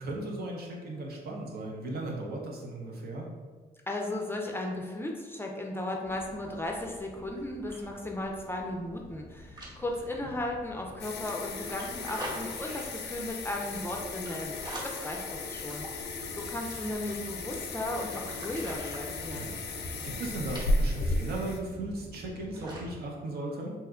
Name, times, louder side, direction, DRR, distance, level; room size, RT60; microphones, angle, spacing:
voice 1, 0.0-3.3 10.2-10.3 19.3-19.6 20.0-23.7, right 2 dB, 70° right, -1 dB, 0.7 m, -37 dB
voice 2, 3.9-19.5, left 1 dB, 15° left, 0 dB, 0.4 m, -36 dB
sound 1, 6.0-23.0, right 1 dB, 25° right, 0.9 m, -46 dB
sound 2, 11.0-21.6, left 2 dB, 85° left, 0.4 m, -35 dB
2.8 x 2.1 x 3.6 m, 1.4 s
cardioid pair, 85°, 17 cm